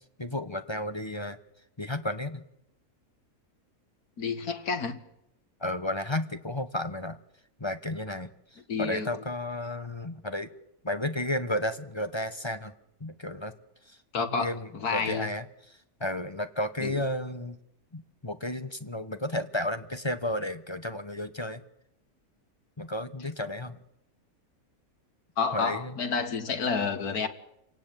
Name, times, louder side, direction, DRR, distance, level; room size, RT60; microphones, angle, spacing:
voice 1, 0.2-1.4 1.8-2.4 5.6-7.2 7.6-10.5 10.8-12.7 13.0-13.5 13.9-17.6 17.9-21.6 22.8-23.8 25.5-26.0, left 1 dB, 20° left, 1.1 m, -33 dB
voice 2, 4.2-5.0 8.7-9.1 14.1-15.3 16.8-17.0 25.4-27.3, left 5 dB, 80° left, 2.3 m, -30 dB
28.0 x 18.0 x 9.2 m
omnidirectional pair, 1.6 m